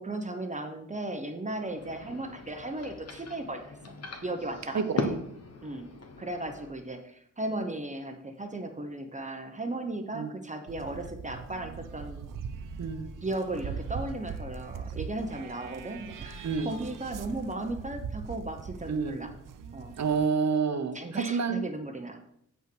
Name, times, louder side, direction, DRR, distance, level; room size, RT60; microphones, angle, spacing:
voice 1, 0.0-3.8 4.2-5.1 5.6-5.9 6.2-12.3 13.2-19.3 19.7-19.9 20.9-22.2, right 2 dB, 25° right, 5 dB, 1.0 m, -36 dB
sound 1, 1.6-6.7, left 2 dB, 50° left, 1.3 m, -38 dB
sound 2, 10.7-20.3, right 6 dB, 75° right, 0.7 m, -41 dB
voice 2, 20.0-21.6, right 5 dB, 55° right, 8 dB, 1.1 m, -28 dB
7.7 x 5.7 x 6.2 m, 0.72 s
wide cardioid pair, 95°, 32 cm